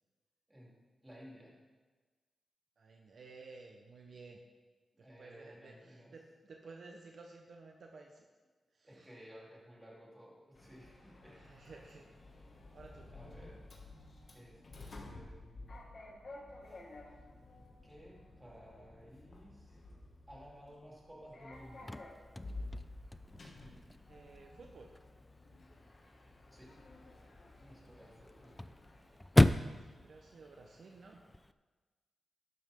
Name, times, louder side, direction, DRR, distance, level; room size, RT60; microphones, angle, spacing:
voice 1, 1.0-1.6 4.9-6.2 8.9-11.5 12.5-12.6 13.1-13.6 14.3-15.8 17.8-19.8 20.3-21.9 26.5-26.8 27.2-27.3 27.6-28.8, equal, 15° right, -5 dB, 3.8 m, -56 dB
voice 2, 2.8-4.4 5.0-8.3 8.7-9.1 11.2-13.1 24.1-24.9 29.7-31.2, right 3 dB, 65° right, 1 dB, 1.1 m, -55 dB
Sliding door, 10.5-30.1, left 2 dB, 45° left, 2.3 m, -52 dB
Chirp tweet / Car / Slam, 21.5-31.5, left 1 dB, 10° left, 0.4 m, -36 dB
12.0 x 11.0 x 3.9 m, 1.3 s
cardioid pair, 90°, 0 cm